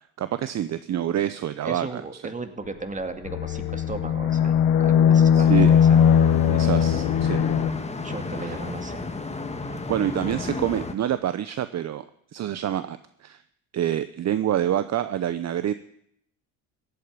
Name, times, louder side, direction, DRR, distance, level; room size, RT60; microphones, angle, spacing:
voice 1, 0.2-2.0 5.3-5.7 6.5-7.4 8.4-8.6 9.7-12.0 12.3-13.4 13.7-15.7, right 11 dB, 45° right, 13 dB, 0.8 m, -27 dB
voice 2, 1.6-6.0 8.0-9.0, right 3 dB, 20° right, 7 dB, 2.2 m, -36 dB
sound 1, 3.3-7.7, left 8 dB, 75° left, 1.3 m, -19 dB
sound 2, 5.4-10.9, left 3 dB, 15° left, 1.9 m, -33 dB
15.5 x 8.6 x 9.8 m, 0.71 s
supercardioid pair, 80°, 39 cm